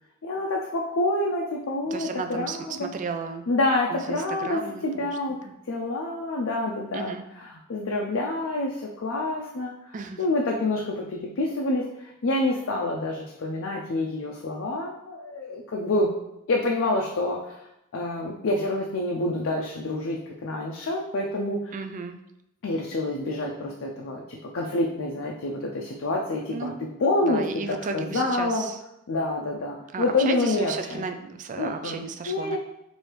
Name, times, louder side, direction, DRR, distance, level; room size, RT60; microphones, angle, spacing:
voice 1, 0.2-2.9 3.5-7.1 7.7-9.7 10.2-16.1 16.5-17.6 17.9-21.7 22.6-26.7 27.0-28.7 29.1-31.0 31.6-32.6, left 2 dB, 60° left, -1 dB, 0.5 m, -27 dB
voice 2, 1.9-3.5 3.9-5.5 6.9-7.2 9.9-10.2 21.7-22.2 26.5-26.8 27.2-28.8 29.9-32.6, right 4 dB, 35° right, 7 dB, 0.3 m, -34 dB
3.3 x 2.7 x 4.4 m, 0.84 s
head